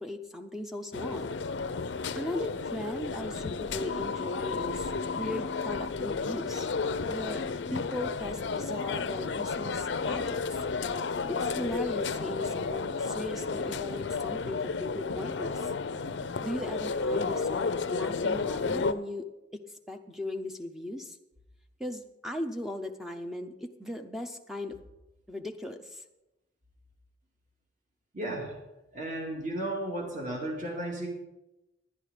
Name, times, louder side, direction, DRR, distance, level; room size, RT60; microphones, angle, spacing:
voice 1, 0.0-1.3 2.1-6.7 7.1-7.4 7.7-10.6 11.3-15.7 16.4-19.3 19.5-19.6 19.9-21.2 21.8-24.8 25.3-26.0, left 1 dB, ahead, 6 dB, 0.6 m, -38 dB
sound 1, 0.9-18.9, left 4 dB, 70° left, 0.5 m, -32 dB
voice 2, 28.1-28.6 28.9-31.1, right 1 dB, 40° right, 0 dB, 2.1 m, -34 dB
11.0 x 10.5 x 5.0 m, 0.98 s
head